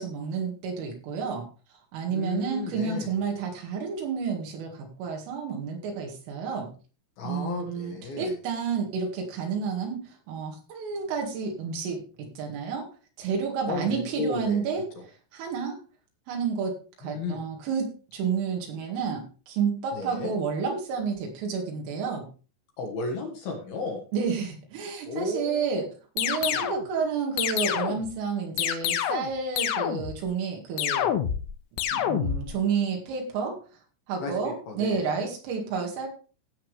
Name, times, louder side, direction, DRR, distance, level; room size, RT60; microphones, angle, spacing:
voice 1, 0.0-1.5 1.9-6.7 7.2-12.9 13.2-14.8 15.3-15.8 16.3-22.3 24.1-25.8 26.2-31.1 31.9-33.6 34.1-36.1, right 6 dB, 75° right, 1 dB, 4.6 m, -30 dB
voice 2, 2.1-3.1 7.2-8.3 13.7-14.7 17.0-17.4 19.9-20.3 22.8-24.0 25.1-25.9 26.4-26.7 34.2-35.3, left 3 dB, 60° left, 2 dB, 2.9 m, -34 dB
sound 1, 26.2-26.9 27.4-28.1 28.6-29.3 29.6-30.2 30.8-31.5 31.8-32.5, left 10 dB, 90° left, 3.5 m, -27 dB
16.0 x 7.2 x 3.3 m, 0.36 s
omnidirectional pair, 5.9 m